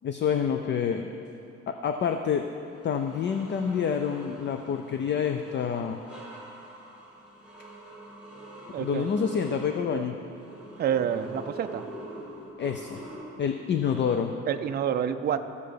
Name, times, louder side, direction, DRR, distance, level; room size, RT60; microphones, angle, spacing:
voice 1, 0.0-1.1 1.7-2.5 2.8-6.0 8.8-10.2 12.6-13.0 13.4-14.3, left 7 dB, 40° left, 6 dB, 0.4 m, -27 dB
sound 1, 1.9-2.1 2.7-14.6, right 2 dB, 5° right, 1.9 m, -44 dB
voice 2, 8.7-9.1 9.9-10.0 10.8-11.9 14.5-15.4, right 8 dB, 35° right, 8 dB, 0.4 m, -28 dB
14.5 x 6.8 x 5.1 m, 2.7 s
cardioid pair, 165°, 30 cm